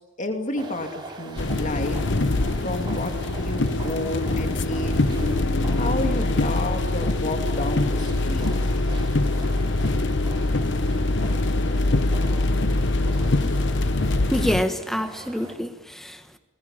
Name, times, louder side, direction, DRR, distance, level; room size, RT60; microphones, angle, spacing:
voice 1, 0.2-2.0 2.6-5.4 5.8-8.4, left 2 dB, 35° left, 5 dB, 2.4 m, -31 dB
sound 1, 0.5-15.6, right 2 dB, 20° right, 3.4 m, -41 dB
sound 2, 1.4-14.6, left 2 dB, 55° left, 0.9 m, -23 dB
voice 2, 14.3-16.4, equal, ahead, 8 dB, 1.3 m, -27 dB
21.0 x 19.5 x 10.0 m, 1.2 s
head